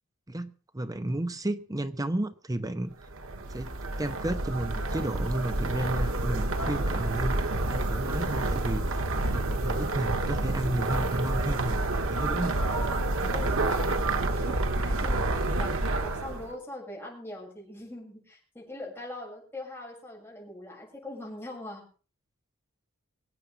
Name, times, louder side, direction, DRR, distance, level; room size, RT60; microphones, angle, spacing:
voice 1, 0.3-3.1 3.5-7.4 7.7-9.1 9.3-12.6, right 1 dB, 15° right, 11 dB, 0.8 m, -32 dB
sound 1, 3.0-16.5, right 2 dB, 70° right, 1.6 m, -29 dB
voice 2, 13.3-15.7 16.0-21.8, left 1 dB, 10° left, -3 dB, 7.1 m, -42 dB
24.0 x 8.6 x 5.0 m, 0.39 s
head